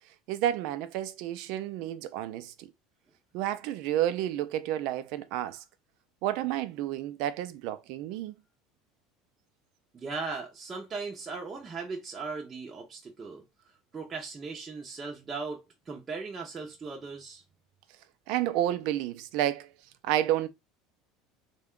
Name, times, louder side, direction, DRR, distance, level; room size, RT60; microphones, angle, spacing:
voice 1, 0.3-2.7 3.3-5.6 6.2-8.3 18.3-19.7 20.0-20.5, right 12 dB, 65° right, 0.5 m, -30 dB
voice 2, 9.9-13.4 13.9-17.4, right 4 dB, 20° right, 0.7 m, -38 dB
3.5 x 2.2 x 3.6 m
cardioid pair, 140°, 0 cm